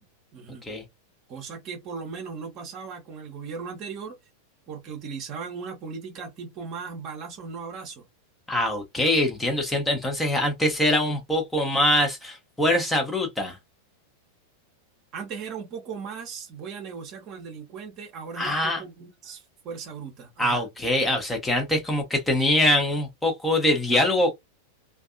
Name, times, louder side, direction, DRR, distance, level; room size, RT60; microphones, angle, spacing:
voice 1, 0.3-0.7 1.3-4.1 4.7-8.0 15.1-20.6, right 5 dB, 35° right, 0.8 m, -37 dB
voice 2, 8.5-13.6 18.4-18.8 20.4-24.3, left 1 dB, 5° left, 0.8 m, -23 dB
2.5 x 2.3 x 2.4 m
figure-of-eight pair, 90°, 0 cm